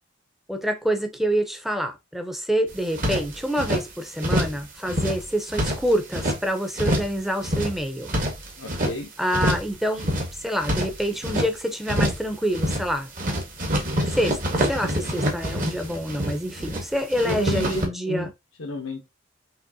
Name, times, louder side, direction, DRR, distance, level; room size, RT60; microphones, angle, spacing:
voice 1, 0.5-8.1 9.2-10.1 10.4-13.1 14.1-18.3, equal, ahead, 0.7 m, -26 dB
sound 1, 2.7-3.8 4.2-4.6 4.9-6.4 6.8-7.2 7.4-9.0 9.3-9.7 10.0-11.5 11.9-12.3 12.5-12.9 13.2-16.8 17.1-17.9, equal, 40° right, 1.3 m, -26 dB
voice 2, 8.6-9.1 17.2-17.8 18.1-18.3 18.6-19.0, left 2 dB, 90° left, 0.9 m, -31 dB
5.6 x 3.0 x 2.7 m
head